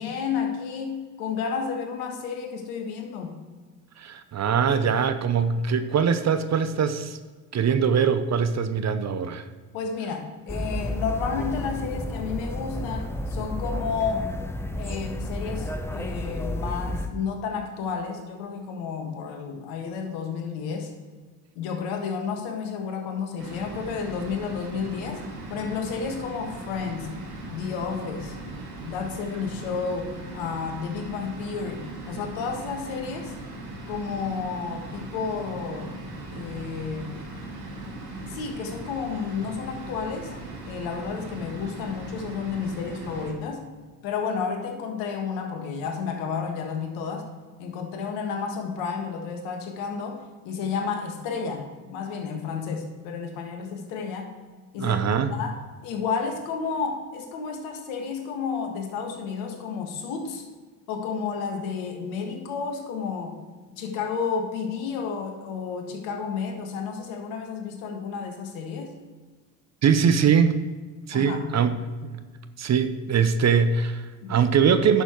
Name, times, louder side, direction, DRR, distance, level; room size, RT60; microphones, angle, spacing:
voice 1, 0.0-3.4 9.7-14.3 14.7-20.9 21.6-25.2 25.5-27.1 27.5-28.4 28.8-33.3 33.9-36.0 36.3-37.1 38.3-40.3 40.6-43.6 44.0-47.3 47.6-54.3 54.7-55.0 55.3-55.6 55.8-60.4 60.9-63.4 63.8-68.9 71.1-71.5 74.2-74.4, left 6 dB, 65° left, 4 dB, 1.8 m, -31 dB
voice 2, 4.0-7.2 7.5-9.4 54.8-55.3 69.8-70.6 71.1-72.2 72.6-75.0, right 6 dB, 35° right, 11 dB, 0.7 m, -22 dB
sound 1, 10.5-17.1, left 1 dB, 5° left, 0.7 m, -31 dB
sound 2, 23.4-43.3, right 2 dB, 80° right, 2.0 m, -39 dB
10.5 x 6.7 x 4.6 m, 1.4 s
hypercardioid pair, 60°, 49 cm